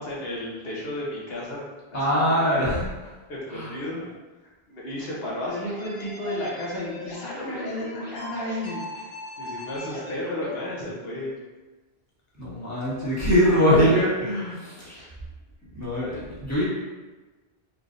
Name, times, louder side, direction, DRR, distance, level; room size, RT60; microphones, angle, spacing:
voice 1, 0.0-1.6 1.9-2.7 3.3-4.0 4.7-9.1 9.4-11.4 13.5-14.1 14.9-15.1, left 1 dB, 65° left, -5 dB, 1.3 m, -33 dB
voice 2, 1.9-2.9 3.5-3.7 12.4-15.0 15.7-16.6, equal, 15° left, -9 dB, 1.5 m, -22 dB
sound 1, 5.5-10.5, left 1 dB, 40° left, 1.7 m, -38 dB
4.4 x 3.5 x 2.6 m, 1.2 s
omnidirectional pair, 1.1 m